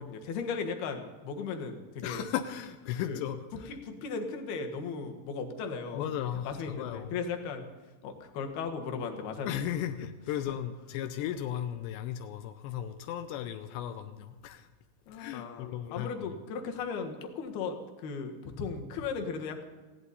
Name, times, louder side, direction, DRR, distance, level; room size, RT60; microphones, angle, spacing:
voice 1, 0.0-2.3 3.1-3.2 3.7-6.0 6.4-7.7 8.0-9.5 15.1-19.6, left 5 dB, 65° left, 4 dB, 2.8 m, -36 dB
voice 2, 2.0-3.8 5.9-7.1 9.4-14.7 15.1-16.3, left 10 dB, 85° left, 8 dB, 2.5 m, -36 dB
20.0 x 15.5 x 4.1 m, 1.3 s
omnidirectional pair, 5.8 m